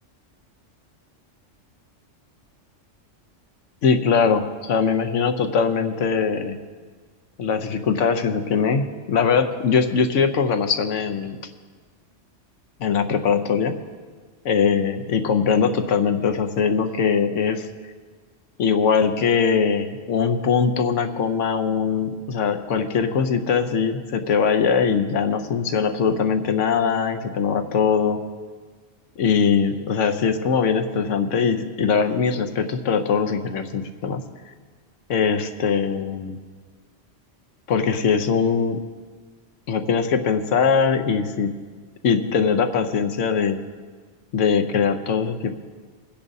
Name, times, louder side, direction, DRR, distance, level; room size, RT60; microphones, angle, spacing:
voice 1, 3.8-6.6 7.4-11.4 12.8-13.8 14.4-17.6 18.6-28.2 29.2-34.2 35.1-36.4 37.7-38.8 39.7-41.5 42.0-43.6 44.3-45.5, left 6 dB, 80° left, 8 dB, 1.1 m, -21 dB
24.0 x 10.0 x 2.7 m, 1.5 s
omnidirectional pair, 1.3 m